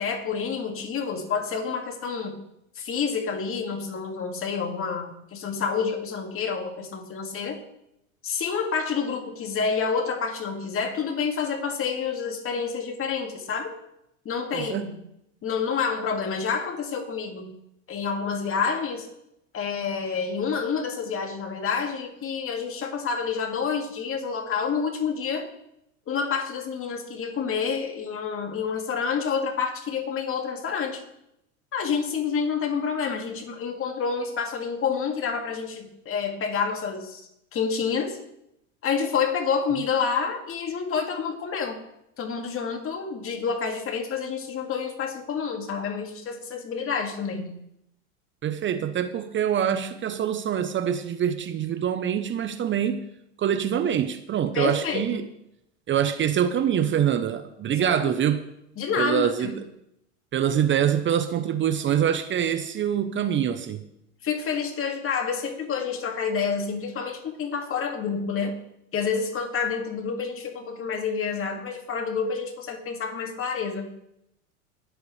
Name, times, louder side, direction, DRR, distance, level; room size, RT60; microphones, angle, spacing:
voice 1, 0.0-2.4 2.8-7.6 8.2-13.7 14.2-15.0 15.4-17.5 17.9-19.1 19.5-25.4 26.1-31.0 31.7-37.2 37.5-38.2 38.8-41.8 42.2-47.6 54.5-55.2 57.7-58.1 58.8-59.6 64.2-68.6 68.9-73.9, left 6 dB, 35° left, 3 dB, 2.3 m, -28 dB
voice 2, 14.5-14.9 48.4-53.0 53.4-55.2 55.9-58.4 59.0-59.5 60.3-63.8, right 9 dB, 30° right, 10 dB, 0.8 m, -25 dB
19.5 x 8.1 x 3.3 m, 0.80 s
hypercardioid pair, 95°, 38 cm